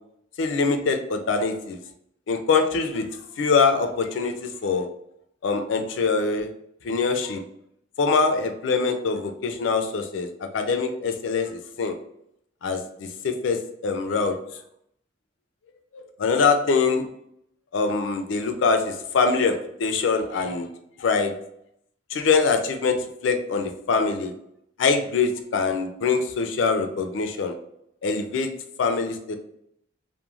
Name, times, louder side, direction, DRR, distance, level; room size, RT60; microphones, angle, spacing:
voice 1, 0.4-1.8 2.3-3.1 3.4-4.9 5.4-6.5 6.8-7.4 8.0-10.3 10.5-11.9 12.6-13.6 13.8-14.3 16.2-17.0 17.7-20.7 21.0-21.3 22.1-23.0 23.2-24.3 24.8-27.5 28.0-28.5 28.8-29.4, left 4 dB, 80° left, 6 dB, 0.4 m, -23 dB
3.0 x 2.1 x 2.3 m, 0.74 s
head